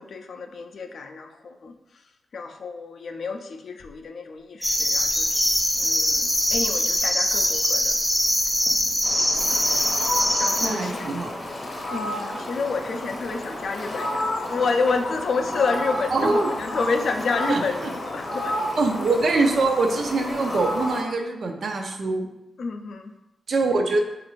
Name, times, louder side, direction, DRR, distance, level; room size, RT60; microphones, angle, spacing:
voice 1, 0.0-1.7 2.3-5.3 5.8-8.0 10.4-10.9 11.9-18.5 22.6-23.1, left 4 dB, 65° left, 6 dB, 0.3 m, -29 dB
sound 1, 4.6-10.7, equal, ahead, 0.5 m, -22 dB
Fowl, 9.0-21.0, left 1 dB, 40° left, 0.8 m, -31 dB
voice 2, 10.6-11.4 16.1-16.5 17.5-17.9 18.8-22.3 23.5-24.0, right 3 dB, 65° right, 4 dB, 0.4 m, -23 dB
3.9 x 2.5 x 3.0 m, 0.94 s
cardioid pair, 90°, 0 cm